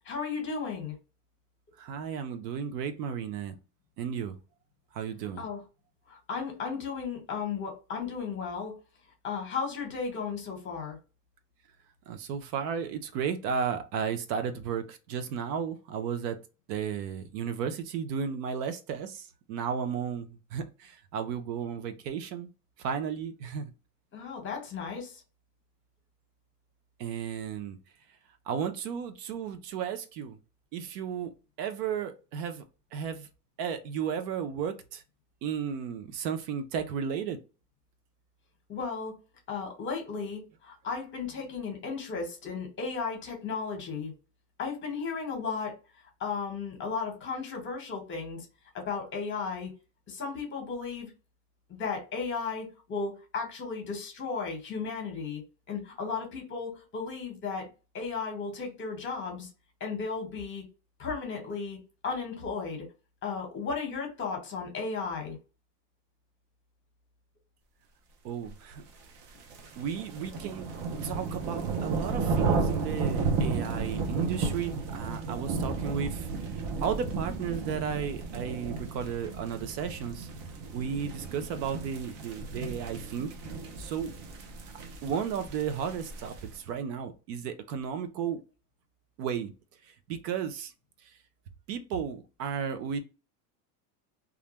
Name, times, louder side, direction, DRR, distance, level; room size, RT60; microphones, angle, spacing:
voice 1, 0.0-0.9 5.4-5.6 6.1-8.8 9.2-11.0 24.1-25.2 38.7-39.1 39.5-44.1 44.6-45.7 46.2-48.5 48.7-49.7 50.1-51.1 51.7-55.4 55.7-57.7 57.9-59.5 59.8-60.6 61.0-61.8 62.0-62.9 63.2-65.4, left 5 dB, 25° left, 1.1 m, -35 dB
voice 2, 1.8-3.6 4.0-4.4 4.9-5.5 12.1-16.4 16.7-22.5 22.8-23.7 27.0-27.8 28.5-30.4 30.7-31.3 31.6-32.6 32.9-33.3 33.6-35.0 35.4-37.4 68.2-68.9 69.8-70.7 71.0-80.3 80.7-83.3 83.8-84.1 85.0-88.4 89.2-89.5 89.9-90.7 91.0-91.1 91.7-93.0, right 7 dB, 80° right, 0.7 m, -34 dB
sound 1, 69.0-86.6, right 4 dB, 45° right, 0.7 m, -33 dB
2.4 x 2.1 x 3.0 m
supercardioid pair, 140°, 47 cm